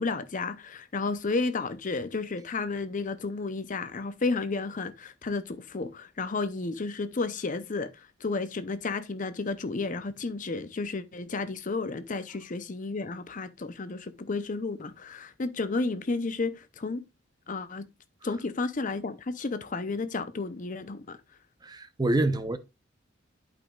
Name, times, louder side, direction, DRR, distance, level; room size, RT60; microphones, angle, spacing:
voice 1, 0.0-17.0 17.5-17.9 18.2-21.2, left 3 dB, 40° left, 0.6 m, -32 dB
voice 2, 21.6-22.6, right 2 dB, 20° right, 0.6 m, -26 dB
11.5 x 5.4 x 2.4 m
head